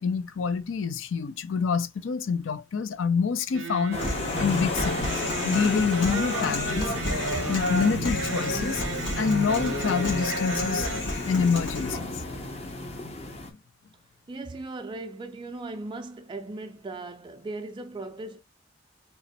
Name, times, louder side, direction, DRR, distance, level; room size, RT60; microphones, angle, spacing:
voice 1, 0.0-6.9 7.5-8.8 9.2-10.9 11.3-12.1, left 5 dB, 85° left, 0.4 m, -27 dB
sound 1, 3.5-11.0, right 3 dB, 80° right, 0.6 m, -34 dB
sound 2, 3.9-13.5, left 2 dB, 35° left, 0.8 m, -34 dB
Human voice, 4.0-12.0, left 2 dB, 65° left, 1.8 m, -31 dB
voice 2, 14.3-18.4, right 2 dB, 25° right, 0.4 m, -38 dB
3.4 x 3.0 x 4.1 m
head